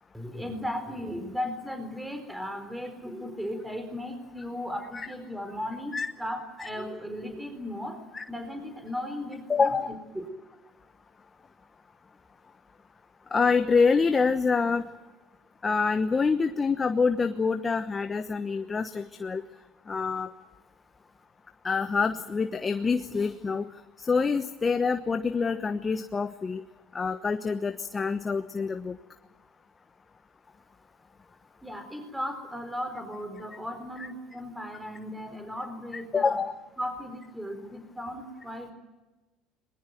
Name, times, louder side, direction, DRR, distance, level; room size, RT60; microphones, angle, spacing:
voice 1, 0.1-8.0 8.3-10.3 31.6-36.4 36.8-38.7, equal, 5° right, 6 dB, 4.2 m, -36 dB
voice 2, 9.5-9.9 13.3-14.8 15.6-19.4 19.9-20.3 21.6-23.7 24.0-26.6 26.9-29.0 36.1-36.5, left 5 dB, 25° left, 9 dB, 1.1 m, -26 dB
21.0 x 21.0 x 9.2 m, 1.1 s
supercardioid pair, 95°, 0 cm